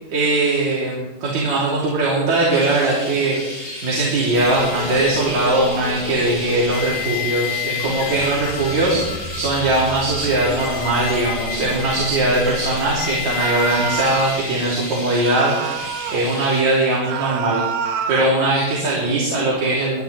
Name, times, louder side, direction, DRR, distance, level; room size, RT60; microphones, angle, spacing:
voice 1, 0.1-17.6 18.1-20.0, right 2 dB, 55° right, -6 dB, 4.2 m, -20 dB
Chirp tweet, 2.5-16.6, left 1 dB, 30° left, 4.8 m, -34 dB
sound 1, 4.3-16.2, left 6 dB, 70° left, 0.9 m, -30 dB
sound 2, 13.4-14.4 15.2-16.3 17.0-18.4, right 8 dB, 80° right, 2.5 m, -27 dB
21.5 x 12.5 x 3.4 m, 1.1 s
omnidirectional pair, 3.8 m